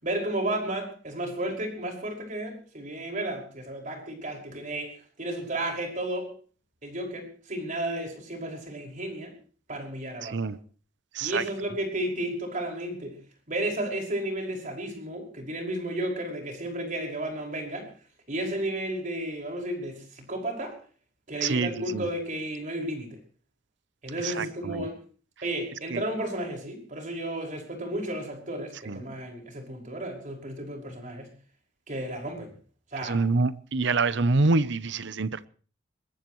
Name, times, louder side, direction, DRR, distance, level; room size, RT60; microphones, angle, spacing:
voice 1, 0.0-4.9 5.2-6.3 6.8-9.3 9.7-10.5 11.2-13.2 13.5-17.9 18.3-20.8 21.3-23.2 24.0-25.0 25.4-31.3 31.9-32.5 32.9-33.2, right 1 dB, 45° right, 5.6 m, -33 dB
voice 2, 10.2-10.6 11.1-11.4 21.4-22.1 24.2-24.9 25.9-26.0 28.9-29.0 33.0-35.5, right 3 dB, 65° right, 0.8 m, -26 dB
22.0 x 20.5 x 3.2 m
head